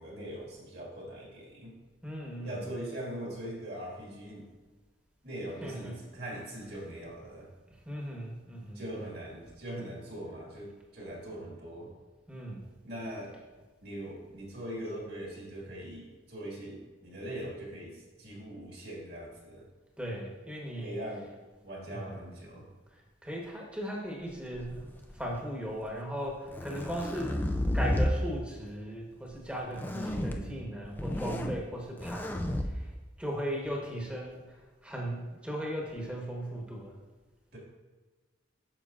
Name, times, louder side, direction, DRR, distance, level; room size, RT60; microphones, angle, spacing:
voice 1, 0.0-1.8 2.4-4.5 5.2-7.5 8.7-11.9 12.8-13.4 13.8-19.6 20.7-21.3 21.6-22.7 29.9-30.6 37.5-37.6, right 1 dB, 55° right, -3 dB, 2.0 m, -41 dB
voice 2, 2.0-2.6 5.6-5.9 7.8-8.8 12.3-12.6 20.0-21.0 21.9-22.2 23.2-27.5 27.7-32.4 32.7-32.9 33.2-37.0, equal, 5° right, -2 dB, 1.2 m, -37 dB
sound 1, 24.6-25.4 26.3-28.2 29.7-30.4 30.8-31.6 32.0-32.7, left 1 dB, 10° left, 0.3 m, -31 dB
8.8 x 6.5 x 2.5 m, 1.3 s
head